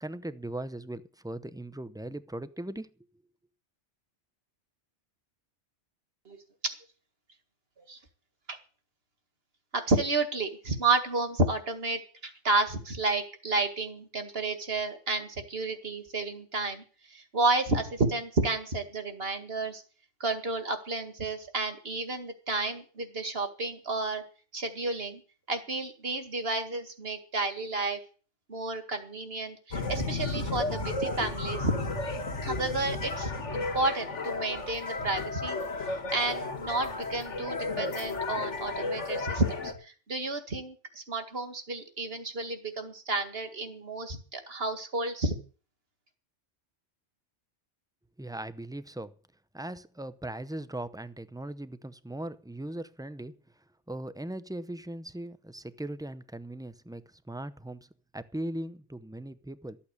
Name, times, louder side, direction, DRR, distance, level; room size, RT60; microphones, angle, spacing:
voice 1, 0.0-2.9 48.2-49.1 49.5-53.3 53.9-57.9 58.1-59.8, right 1 dB, 5° right, 0.5 m, -39 dB
voice 2, 9.7-19.8 20.2-24.2 24.5-25.2 25.5-28.0 28.5-31.7 32.4-35.6 36.1-45.3, right 3 dB, 55° right, 2.3 m, -31 dB
sound 1, 29.7-39.7, left 3 dB, 80° left, 2.1 m, -33 dB
13.5 x 8.6 x 8.3 m
omnidirectional pair, 1.2 m